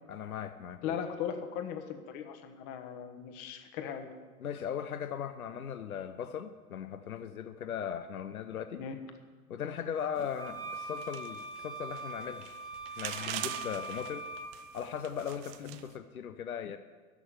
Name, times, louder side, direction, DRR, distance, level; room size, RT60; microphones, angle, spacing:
voice 1, 0.1-1.0 4.4-8.9 9.5-12.5 13.0-14.3 14.7-16.8, left 8 dB, 75° left, 11 dB, 0.7 m, -38 dB
voice 2, 0.8-4.1 8.8-9.0 10.2-10.3 15.6-15.8, left 8 dB, 40° left, 7 dB, 1.4 m, -38 dB
sound 1, 10.2-15.9, right 13 dB, 40° right, 0.8 m, -44 dB
sound 2, 10.4-14.5, right 2 dB, 10° left, 1.5 m, -42 dB
13.0 x 6.0 x 9.4 m, 1.5 s
figure-of-eight pair, 90°, 43 cm